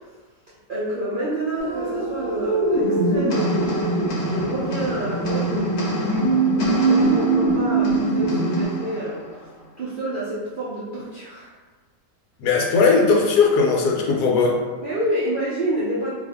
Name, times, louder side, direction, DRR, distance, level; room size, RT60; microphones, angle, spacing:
voice 1, 0.7-9.2 9.8-11.5 14.8-16.1, right 1 dB, 80° right, -8 dB, 0.4 m, -28 dB
sound 1, 1.6-8.6, right 2 dB, 20° left, 0.4 m, -22 dB
sound 2, 3.3-9.9, left 2 dB, 55° left, 0.7 m, -34 dB
voice 2, 12.4-14.6, left 4 dB, 80° left, 0 dB, 1.1 m, -18 dB
2.7 x 2.5 x 3.4 m, 1.4 s
omnidirectional pair, 1.8 m